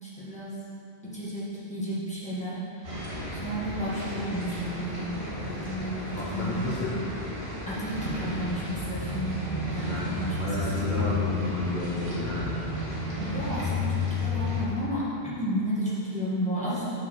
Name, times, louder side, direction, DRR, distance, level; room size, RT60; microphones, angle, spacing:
voice 1, 0.0-0.6 1.0-6.7 7.4-9.4 9.7-11.2 13.2-16.9, equal, 5° left, -9 dB, 1.9 m, -33 dB
sound 1, 2.8-14.6, left 2 dB, 80° right, 2.2 m, -32 dB
voice 2, 6.1-7.0 9.9-12.5, left 2 dB, 50° left, -6 dB, 1.1 m, -31 dB
6.7 x 4.9 x 6.5 m, 2.6 s
omnidirectional pair, 1.1 m